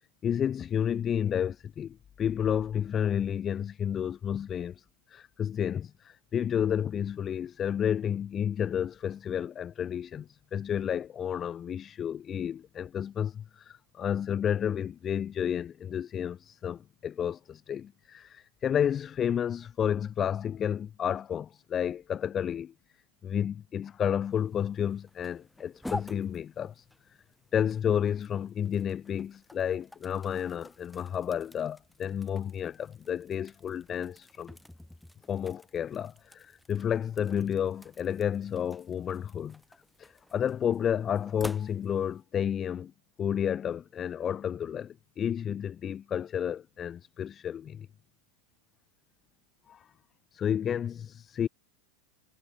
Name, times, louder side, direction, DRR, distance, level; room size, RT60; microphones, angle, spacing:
voice 1, 0.2-22.7 23.2-26.9 27.5-34.6 35.3-39.6 40.0-42.9 43.2-47.9 49.7-49.9 50.3-51.5, left 9 dB, 30° left, 0.3 m, -31 dB
sound 1, 24.2-42.2, left 1 dB, 5° left, 2.1 m, -49 dB
hypercardioid pair, 105°, 0 cm